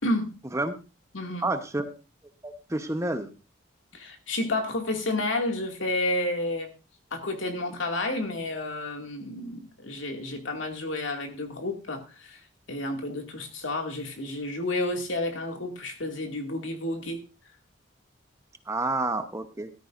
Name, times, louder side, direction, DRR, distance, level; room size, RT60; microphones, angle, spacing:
voice 1, 0.0-0.4 1.1-1.5 3.9-6.7 7.1-12.4 12.7-17.2, left 2 dB, 80° left, 3 dB, 2.2 m, -30 dB
voice 2, 1.4-2.0 2.4-3.3 18.7-19.7, right 2 dB, 15° right, 8 dB, 0.9 m, -29 dB
13.5 x 13.5 x 2.5 m, 0.30 s
head